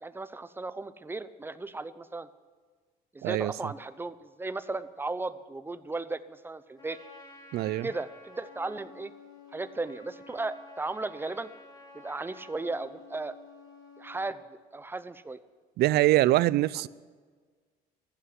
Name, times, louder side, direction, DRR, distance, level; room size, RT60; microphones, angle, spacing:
voice 1, 0.0-2.3 3.1-7.0 7.8-9.1 9.5-11.5 11.9-13.4 14.0-14.4 14.7-15.4, right 3 dB, 15° right, 0.7 m, -36 dB
voice 2, 3.2-3.7 7.5-7.9 15.8-16.9, right 16 dB, 70° right, 0.4 m, -24 dB
Trumpet, 6.8-14.4, left 3 dB, 25° left, 3.2 m, -51 dB
15.0 x 8.6 x 9.8 m
cardioid pair, 110°, 17 cm